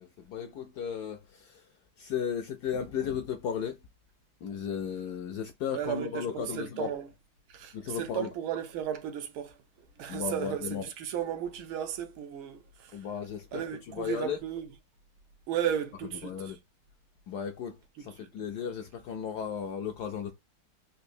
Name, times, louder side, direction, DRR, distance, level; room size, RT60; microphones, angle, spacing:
voice 1, 0.0-1.7 2.0-3.8 4.4-6.9 7.7-8.3 10.1-10.8 12.9-14.4 16.2-16.6 17.3-20.3, left 7 dB, 75° left, 0.9 m, -35 dB
voice 2, 5.7-7.1 7.5-9.6 10.0-13.1 13.5-14.7 15.5-16.5 18.2-18.3, right 9 dB, 85° right, 1.6 m, -34 dB
4.2 x 2.6 x 2.6 m
omnidirectional pair, 2.2 m